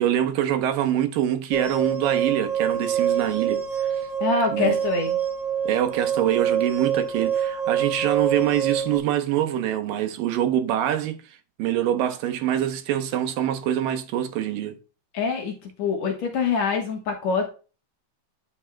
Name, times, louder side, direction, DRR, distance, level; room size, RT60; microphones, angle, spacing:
voice 1, 0.0-4.1 4.5-4.8 5.7-11.2 11.6-14.8, right 11 dB, 80° right, 2.6 m, -25 dB
sound 1, 1.5-9.0, right 8 dB, 15° left, 1.9 m, -26 dB
voice 2, 4.2-5.2 15.1-17.5, left 4 dB, 60° left, 2.3 m, -25 dB
9.6 x 7.1 x 2.2 m
omnidirectional pair, 3.9 m